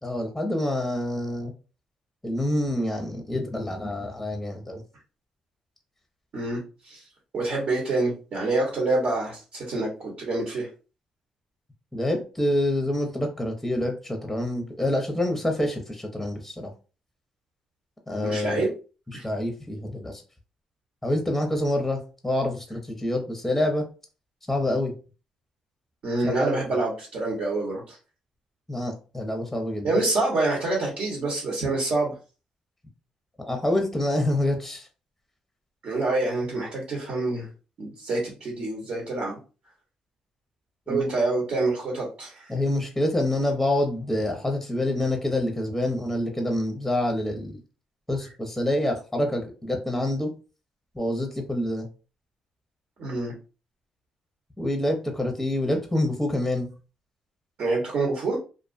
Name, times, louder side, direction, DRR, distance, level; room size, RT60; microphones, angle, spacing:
voice 1, 0.0-1.5 2.2-4.8 11.9-16.7 18.1-18.7 19.2-20.2 21.0-23.8 24.5-24.9 26.2-26.6 28.7-29.9 33.4-34.9 40.9-41.1 42.5-47.6 48.1-50.3 50.9-51.9 54.6-56.7, left 1 dB, 5° left, 3 dB, 0.7 m, -27 dB
voice 2, 6.3-7.0 7.3-10.7 18.2-18.7 19.1-19.2 26.0-28.0 29.8-32.2 35.8-37.5 37.8-39.4 40.9-42.5 53.0-53.3 57.6-58.4, right 2 dB, 65° right, -2 dB, 1.1 m, -27 dB
2.4 x 2.3 x 2.5 m, 0.34 s
supercardioid pair, 65°, 2 cm